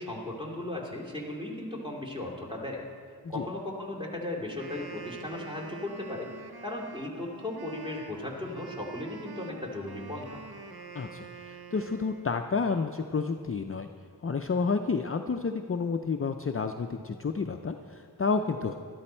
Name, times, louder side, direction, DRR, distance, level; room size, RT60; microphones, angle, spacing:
voice 1, 0.0-2.8 3.3-10.4, left 1 dB, 10° right, -3 dB, 2.5 m, -36 dB
Wind instrument woodwind instrument, 4.5-12.5, right 4 dB, 65° right, 0.8 m, -46 dB
voice 2, 10.9-13.9 14.2-18.7, left 4 dB, 35° left, 6 dB, 0.5 m, -30 dB
12.5 x 12.0 x 4.4 m, 2.2 s
wide cardioid pair, 55°, 41 cm